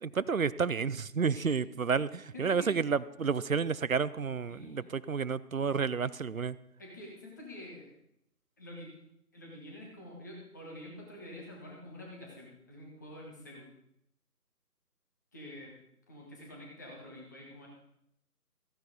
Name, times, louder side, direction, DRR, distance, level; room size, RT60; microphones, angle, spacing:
voice 1, 0.0-6.6, right 5 dB, 60° right, 18 dB, 0.6 m, -30 dB
voice 2, 2.3-2.7 4.5-4.9 6.8-7.9 8.6-8.9 9.3-13.7 15.3-15.7 16.1-17.7, left 1 dB, 10° left, -2 dB, 1.5 m, -47 dB
15.0 x 9.5 x 5.3 m, 0.76 s
figure-of-eight pair, 165°, 47 cm